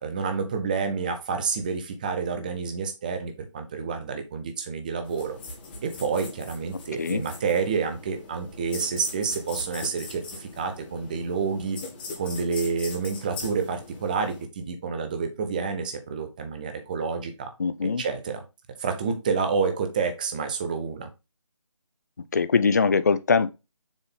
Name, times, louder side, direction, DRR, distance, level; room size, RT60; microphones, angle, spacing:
voice 1, 0.0-5.4 5.8-11.8 12.2-17.5 17.8-18.4 18.8-21.1, right 5 dB, 15° right, 0.7 m, -29 dB
sound 1, 5.0-14.4, left 3 dB, 20° left, 1.4 m, -41 dB
voice 2, 17.6-18.0 22.3-23.5, left 5 dB, 35° left, 0.4 m, -22 dB
7.1 x 3.7 x 3.7 m
figure-of-eight pair, 160°, 16 cm